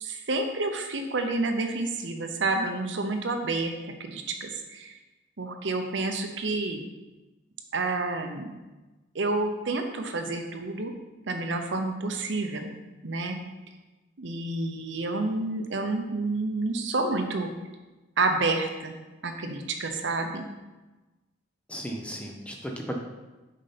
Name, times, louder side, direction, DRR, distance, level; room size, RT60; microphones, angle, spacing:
voice 1, 0.0-3.7 4.0-4.9 5.4-6.8 7.7-8.5 9.1-10.9 11.3-12.7 13.0-13.4 14.2-17.5 18.2-18.9 19.2-20.4, right 3 dB, 70° right, 5 dB, 0.7 m, -29 dB
voice 2, 21.7-23.0, equal, 5° left, 1 dB, 0.7 m, -35 dB
6.4 x 5.3 x 4.2 m, 1.1 s
head